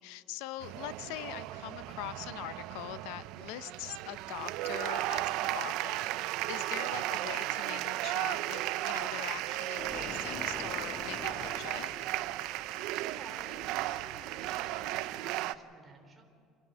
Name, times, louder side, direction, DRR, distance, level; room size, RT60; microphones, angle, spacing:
voice 1, 0.0-6.1 6.5-11.9, left 15 dB, 85° left, 15 dB, 0.7 m, -43 dB
sound 1, 0.6-15.5, right 16 dB, 65° right, 0.6 m, -35 dB
sound 2, 9.8-15.0, left 3 dB, 25° left, 2.0 m, -47 dB
voice 2, 13.0-16.2, right 3 dB, 15° right, 1 dB, 3.5 m, -52 dB
28.5 x 11.5 x 8.7 m, 2.5 s
cardioid pair, 165°, 0 cm